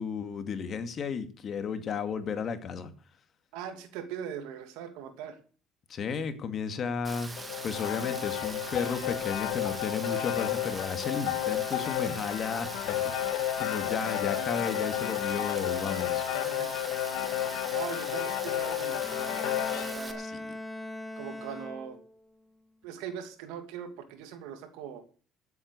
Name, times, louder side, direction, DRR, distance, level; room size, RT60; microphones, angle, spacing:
voice 1, 0.0-2.9 5.9-7.3 7.6-13.3 13.6-16.2 20.2-20.5, left 6 dB, 45° left, 9 dB, 2.2 m, -33 dB
voice 2, 3.5-5.4 16.3-16.8 17.7-20.3 21.2-22.0 22.8-25.0, right 8 dB, 85° right, 8 dB, 2.5 m, -41 dB
Rain, 7.0-20.1, right 3 dB, 20° right, 2.5 m, -42 dB
sound 1, 7.4-20.0, left 12 dB, 80° left, 1.5 m, -32 dB
Bowed string instrument, 19.0-22.2, left 1 dB, 5° right, 2.2 m, -40 dB
13.0 x 8.4 x 6.6 m, 0.40 s
supercardioid pair, 90°, 0 cm